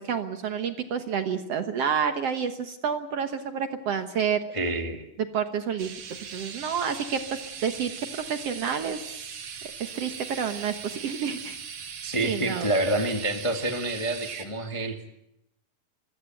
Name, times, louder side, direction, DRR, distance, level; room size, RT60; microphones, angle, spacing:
voice 1, 0.0-4.4 5.3-6.0 6.3-7.9 8.2-9.4 9.8-11.6 12.2-12.7, right 7 dB, 60° right, 8 dB, 1.8 m, -29 dB
voice 2, 4.5-5.0 12.0-15.1, right 1 dB, 35° left, 5 dB, 0.5 m, -28 dB
sound 1, 5.8-14.5, right 7 dB, 85° right, 4.1 m, -40 dB
25.5 x 16.5 x 9.0 m, 0.82 s
omnidirectional pair, 4.0 m